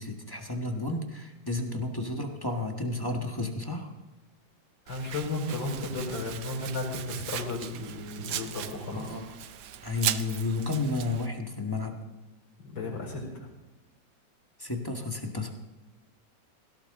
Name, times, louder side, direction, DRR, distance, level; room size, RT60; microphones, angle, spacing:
voice 1, 0.0-3.9 8.9-9.3 9.8-12.0 14.6-15.5, left 2 dB, 15° left, 2 dB, 1.4 m, -32 dB
voice 2, 4.9-9.2 12.6-13.5, left 2 dB, 80° left, -2 dB, 5.2 m, -34 dB
Domestic sounds home sounds, 4.9-11.3, right 10 dB, 65° right, 1.2 m, -38 dB
17.5 x 16.5 x 3.8 m, 1.1 s
omnidirectional pair, 2.1 m